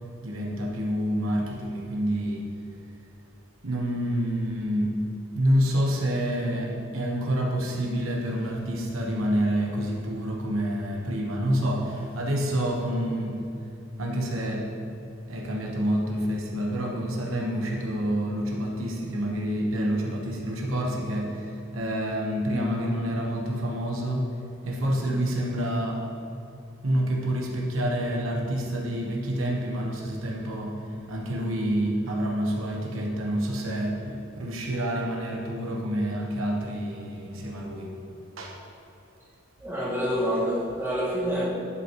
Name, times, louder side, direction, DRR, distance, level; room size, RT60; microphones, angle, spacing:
voice 1, 0.2-2.5 3.6-5.0 5.3-13.4 14.0-14.7 15.3-24.3 24.6-26.0 26.8-30.8 31.1-38.0 38.4-38.6, equal, 85° right, 0 dB, 1.1 m, -28 dB
voice 2, 39.6-41.4, equal, 10° right, -8 dB, 1.7 m, -27 dB
11.0 x 5.5 x 3.0 m, 2.7 s
head